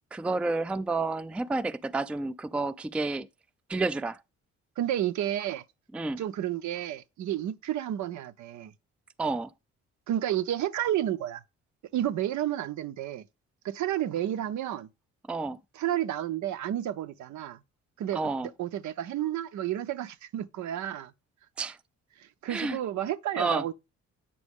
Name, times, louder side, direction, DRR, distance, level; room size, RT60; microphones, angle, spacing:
voice 1, 0.1-3.3 3.7-4.2 5.9-6.2 9.2-9.5 15.3-15.6 18.1-18.5 21.6-21.8 22.5-22.8 23.4-23.6, right 3 dB, 5° right, 0.3 m, -30 dB
voice 2, 4.8-5.6 6.2-8.7 10.1-11.4 11.9-13.2 13.6-14.9 15.8-17.6 18.0-21.1 22.2-23.7, right 12 dB, 70° right, 0.6 m, -31 dB
8.4 x 6.1 x 3.5 m
cardioid pair, 90°, 30 cm